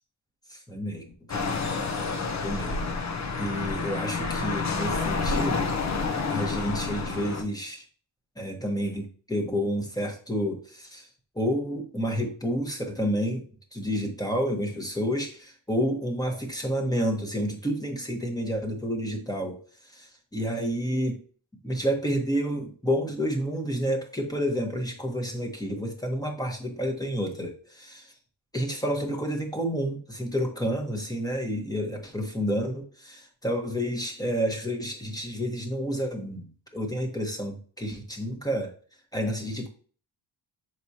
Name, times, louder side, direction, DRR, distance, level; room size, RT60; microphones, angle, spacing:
voice 1, 0.5-1.0 1.3-1.5 2.4-2.9 3.4-5.7 6.3-7.8 8.4-11.1 11.3-13.4 13.7-21.2 21.6-28.1 28.5-36.5 36.7-38.7 39.1-39.7, equal, 10° left, 1 dB, 1.2 m, -30 dB
sound 1, 1.3-7.4, left 4 dB, 35° left, 0.7 m, -29 dB
7.2 x 4.8 x 2.8 m, 0.42 s
wide cardioid pair, 155°, 46 cm